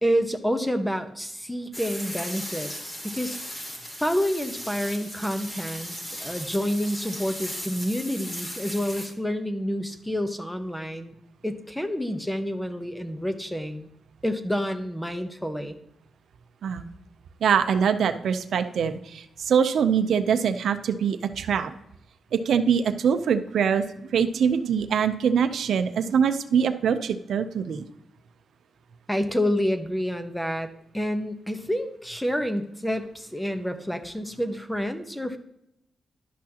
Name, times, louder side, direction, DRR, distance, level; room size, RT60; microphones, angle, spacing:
voice 1, 0.0-3.4 4.0-5.9 6.2-11.1 11.4-13.9 14.2-15.8 29.1-35.4, equal, 5° left, 9 dB, 0.8 m, -28 dB
sound 1, 1.7-9.1, equal, 30° left, 2.5 m, -37 dB
voice 2, 17.4-21.7 22.3-23.8 24.1-27.9, right 7 dB, 80° right, 9 dB, 0.5 m, -23 dB
11.0 x 6.2 x 2.8 m, 0.81 s
cardioid pair, 95°, 0 cm